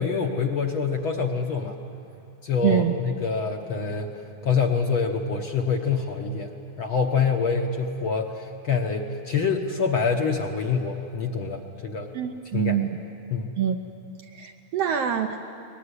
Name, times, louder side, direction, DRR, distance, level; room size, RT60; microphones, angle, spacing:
voice 1, 0.0-1.8 2.4-4.1 4.4-12.1 12.5-12.8 13.3-13.5, left 5 dB, 60° left, 2 dB, 1.5 m, -26 dB
voice 2, 2.6-2.9 12.1-12.9 13.6-13.8 14.3-15.4, right 9 dB, 70° right, 5 dB, 1.6 m, -25 dB
23.0 x 20.5 x 9.8 m, 2.7 s
omnidirectional pair, 3.4 m